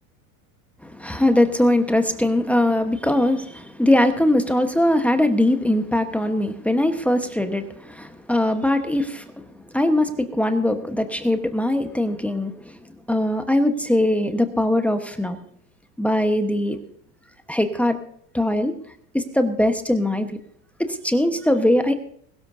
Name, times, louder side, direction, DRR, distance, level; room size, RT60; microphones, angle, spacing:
voice 1, 0.8-9.2 9.7-12.8 13.1-15.4 16.0-16.8 17.5-18.0 18.3-18.7 19.1-20.3 20.8-22.0, left 1 dB, 5° left, 7 dB, 1.2 m, -21 dB
21.5 x 12.5 x 2.7 m, 0.64 s
hypercardioid pair, 105°, 42 cm